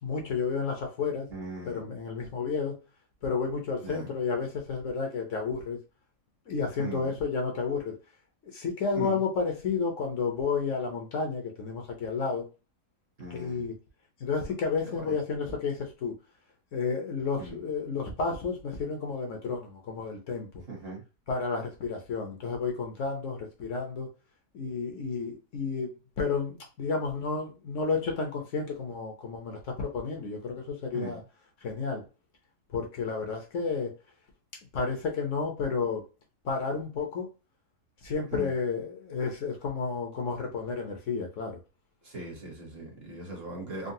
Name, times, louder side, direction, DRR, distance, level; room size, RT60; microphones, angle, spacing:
voice 1, 0.0-1.3 1.7-2.8 3.2-5.8 6.5-7.9 8.5-12.4 13.3-13.7 14.2-16.1 16.7-20.5 21.3-24.1 24.5-25.9 26.2-31.2 31.6-32.0 32.7-33.9 34.7-36.0 36.4-37.3 38.0-41.6, left 5 dB, 65° left, 1.1 m, -31 dB
voice 2, 1.3-1.8 3.8-4.1 6.8-7.1 8.9-9.2 13.2-13.7 14.8-15.2 17.4-17.6 20.7-21.0 30.9-31.2 38.3-38.5 42.0-43.9, right 3 dB, 50° right, 1.2 m, -39 dB
3.8 x 2.0 x 2.6 m
omnidirectional pair, 1.5 m